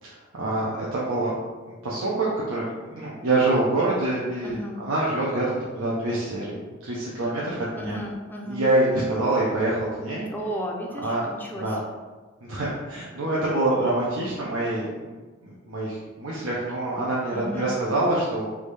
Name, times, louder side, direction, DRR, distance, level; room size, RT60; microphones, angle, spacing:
voice 1, 0.0-1.3 1.7-2.7 2.9-6.5 6.8-8.0 8.5-10.3 11.0-11.2 11.5-11.8 12.4-14.9 15.4-18.5, right 2 dB, 85° right, -6 dB, 0.7 m, -26 dB
voice 2, 4.4-4.8 7.8-8.6 10.3-11.8 17.3-17.7, equal, 10° left, -1 dB, 0.5 m, -34 dB
3.5 x 2.6 x 3.2 m, 1.3 s
head